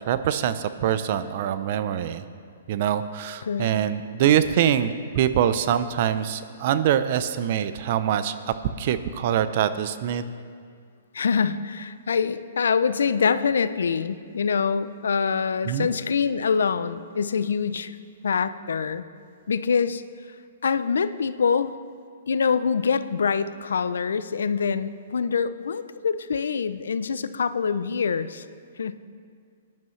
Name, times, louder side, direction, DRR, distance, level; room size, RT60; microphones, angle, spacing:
voice 1, 0.1-2.2 2.7-8.3 8.8-10.3 15.7-15.9, right 9 dB, 50° right, 12 dB, 0.6 m, -24 dB
voice 2, 11.1-17.9 18.2-19.0 19.5-20.0 20.6-21.7 22.3-28.4 28.8-29.0, left 6 dB, 80° left, 13 dB, 0.5 m, -25 dB
19.0 x 10.5 x 3.2 m, 2.1 s
hypercardioid pair, 130°, 0 cm